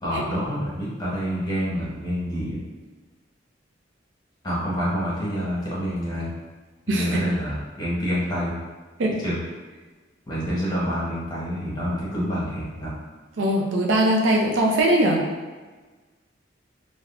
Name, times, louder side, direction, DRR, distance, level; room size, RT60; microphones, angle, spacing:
voice 1, 0.0-2.6 4.4-6.3 6.9-8.6 9.2-9.4 10.3-12.9, equal, 20° left, -8 dB, 0.9 m, -27 dB
voice 2, 6.9-7.2 9.0-9.1 13.4-15.2, right 1 dB, 80° right, 0 dB, 0.4 m, -20 dB
3.4 x 2.0 x 2.3 m, 1.3 s
head